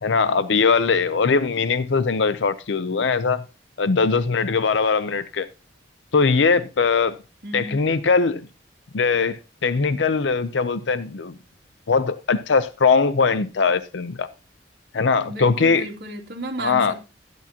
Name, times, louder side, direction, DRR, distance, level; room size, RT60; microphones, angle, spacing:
voice 1, 0.0-3.4 3.8-5.5 6.1-7.2 7.5-8.4 8.9-11.4 11.9-14.3 14.9-15.9 16.6-16.9, left 4 dB, 70° left, 0.6 m, -21 dB
voice 2, 7.4-7.8 15.3-16.9, right 1 dB, 60° right, 2.7 m, -33 dB
13.5 x 11.0 x 2.9 m
head